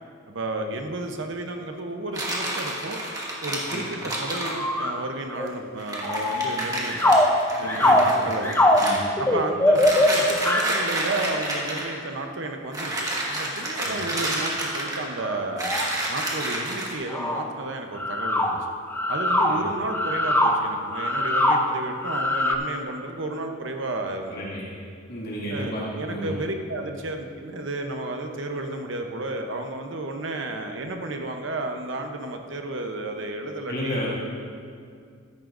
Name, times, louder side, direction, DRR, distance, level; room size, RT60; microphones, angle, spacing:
voice 1, 0.3-3.0 3.4-7.2 7.6-8.6 9.2-15.8 16.1-18.6 19.1-24.4 25.5-34.0, right 2 dB, 65° right, 4 dB, 0.8 m, -32 dB
sound 1, 2.1-4.6 5.5-5.6 5.8-9.0 9.7-11.9 12.7-15.2 15.6-16.9, right 1 dB, 20° right, 1.5 m, -30 dB
sound 2, 4.3-5.0 5.4-5.6 6.0-10.9 14.2-14.3 15.2-15.9 16.2-16.3 16.8-16.9 17.1-17.5 18.0-22.6, left 1 dB, 10° left, 0.6 m, -22 dB
voice 2, 7.6-8.0 8.8-9.0 13.8-14.0 19.5-19.6 24.3-24.6 25.1-26.4 33.7-34.1, equal, 55° left, -6 dB, 2.2 m, -32 dB
14.5 x 11.0 x 2.6 m, 2.2 s
head